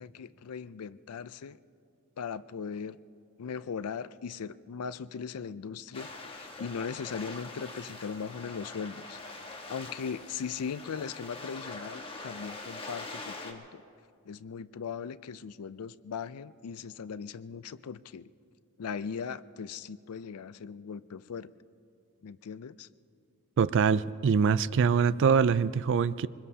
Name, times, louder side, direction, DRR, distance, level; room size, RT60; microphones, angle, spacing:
voice 1, 0.0-1.6 2.2-3.0 3.4-9.2 9.7-13.8 14.2-18.3 18.8-21.5 22.2-22.9, left 6 dB, 80° left, 15 dB, 0.4 m, -39 dB
sound 1, 5.9-13.5, left 2 dB, 25° left, 1.3 m, -43 dB
voice 2, 23.6-26.3, right 6 dB, 55° right, 17 dB, 0.4 m, -24 dB
24.5 x 21.0 x 2.8 m, 2.3 s
head